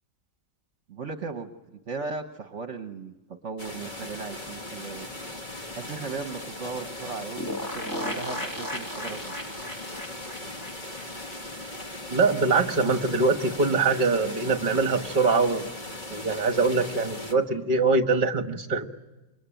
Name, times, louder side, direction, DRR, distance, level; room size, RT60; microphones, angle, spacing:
voice 1, 0.9-1.5 1.9-3.1 3.4-5.1 5.7-9.3, right 4 dB, 55° right, 6 dB, 1.3 m, -36 dB
sound 1, 3.6-17.3, left 1 dB, 30° left, 1.6 m, -39 dB
sound 2, 7.4-12.0 12.3-12.4 12.6-12.7, left 1 dB, 15° left, 1.8 m, -36 dB
voice 2, 12.1-15.7 16.1-18.9, right 3 dB, 35° right, 7 dB, 1.4 m, -23 dB
27.5 x 23.0 x 9.0 m, 1.1 s
omnidirectional pair, 1.6 m